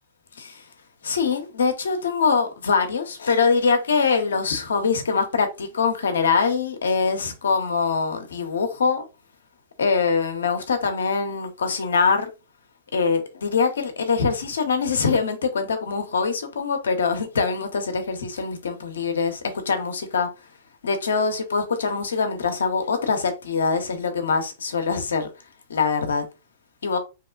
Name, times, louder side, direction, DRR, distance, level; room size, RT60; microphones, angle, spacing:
voice 1, 1.0-9.1 9.8-12.3 12.9-19.4 19.7-20.3 20.8-25.3 25.7-26.3 26.8-27.0, left 5 dB, 80° left, 0.6 m, -23 dB
2.9 x 2.1 x 2.3 m
hypercardioid pair, 110°, 0 cm